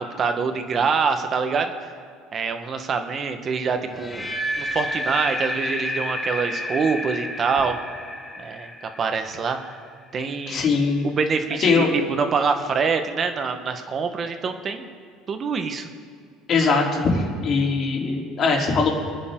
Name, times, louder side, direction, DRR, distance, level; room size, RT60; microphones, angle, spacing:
voice 1, 0.0-1.9 2.3-4.3 4.6-7.8 8.4-9.7 10.1-10.7 11.0-14.9 15.3-15.9, right 5 dB, 35° right, 7 dB, 1.5 m, -25 dB
sound 1, 3.9-9.9, left 1 dB, 10° left, 1.8 m, -30 dB
voice 2, 10.5-11.1 11.6-11.9 16.5-18.9, left 4 dB, 45° left, -1 dB, 3.8 m, -21 dB
27.5 x 9.8 x 4.0 m, 2.2 s
supercardioid pair, 100°, 0 cm